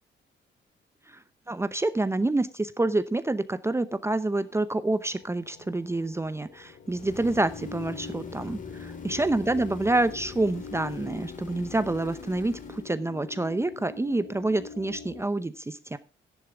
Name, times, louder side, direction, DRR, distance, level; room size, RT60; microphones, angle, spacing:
voice 1, 1.1-16.0, right 2 dB, 15° right, 12 dB, 0.7 m, -28 dB
sound 1, 3.9-15.2, left 6 dB, 65° left, 2.2 m, -44 dB
sound 2, 6.8-12.9, left 4 dB, 40° left, 2.4 m, -45 dB
11.5 x 10.5 x 3.8 m, 0.30 s
cardioid pair, 90°, 20 cm